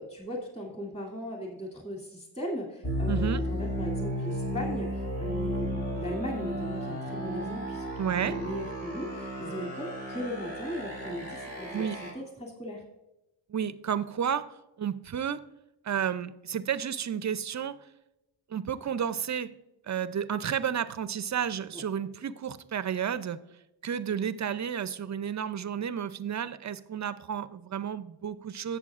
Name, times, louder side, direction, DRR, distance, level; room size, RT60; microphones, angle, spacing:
voice 1, 0.0-7.8 8.3-12.8 21.7-21.8, equal, 15° left, -1 dB, 2.5 m, -37 dB
sound 1, 2.8-12.1, equal, 55° left, 3.7 m, -34 dB
voice 2, 3.1-3.4 8.0-8.4 11.7-12.0 13.5-14.5 14.8-15.4 15.8-17.8 18.5-19.5 19.9-23.4 23.8-28.8, right 8 dB, 35° right, 14 dB, 0.5 m, -31 dB
15.5 x 7.0 x 2.4 m, 0.95 s
cardioid pair, 60°, 49 cm